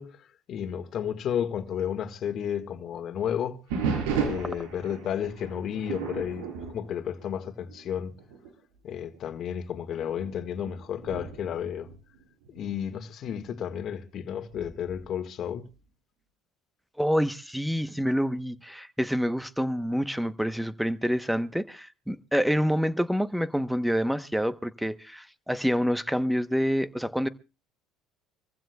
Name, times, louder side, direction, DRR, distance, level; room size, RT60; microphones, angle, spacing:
voice 1, 0.0-3.6 4.2-8.1 8.8-11.9 12.5-15.7, left 9 dB, 50° left, 1.6 m, -32 dB
sound 1, 3.7-7.8 8.2-8.5 9.1-9.2 10.0-12.7 14.5-15.0, right 6 dB, 80° right, 4.7 m, -34 dB
voice 2, 17.0-27.3, equal, ahead, 0.9 m, -27 dB
25.5 x 15.0 x 2.3 m
supercardioid pair, 85°, 0 cm